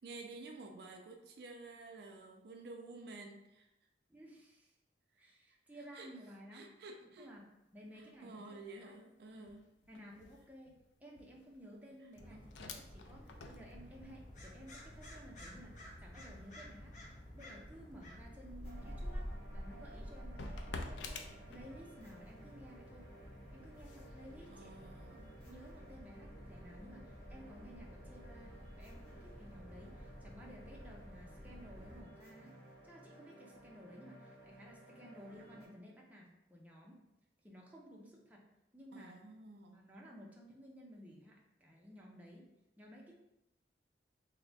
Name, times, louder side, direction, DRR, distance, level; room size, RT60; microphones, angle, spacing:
voice 1, 0.0-3.7 5.9-6.1 6.5-7.3 8.2-9.6 12.3-12.4 18.8-19.0 24.5-25.3 38.9-39.8, right 3 dB, 60° right, 3 dB, 0.4 m, -51 dB
voice 2, 4.1-4.7 5.2-6.7 7.2-7.4 7.7-8.9 9.3-9.4 9.9-10.7 11.0-19.2 19.5-21.2 21.5-23.1 23.5-24.7 25.4-32.5 32.8-37.0 37.4-38.4 38.7-39.1 39.7-42.4 42.8-43.1, equal, 10° right, -3 dB, 0.5 m, -55 dB
sound 1, 7.1-7.5 7.8-22.2 22.6-25.6, left 3 dB, 90° left, 0.4 m, -54 dB
sound 2, 12.1-32.0, equal, 45° left, 0.8 m, -51 dB
sound 3, 18.6-35.7, right 1 dB, 60° left, 1.2 m, -57 dB
3.3 x 2.1 x 4.0 m, 0.90 s
head